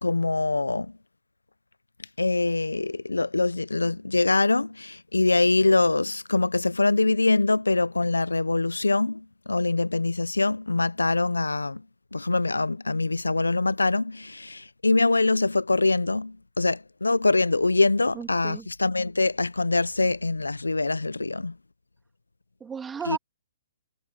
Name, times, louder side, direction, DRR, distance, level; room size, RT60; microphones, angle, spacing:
voice 1, 0.0-0.9 2.2-11.8 12.1-21.5 23.1-23.2, left 3 dB, 90° left, 1.0 m, -24 dB
voice 2, 18.1-18.7 22.6-23.2, right 6 dB, 10° right, 3.3 m, -34 dB
figure-of-eight pair, 125°, 0 cm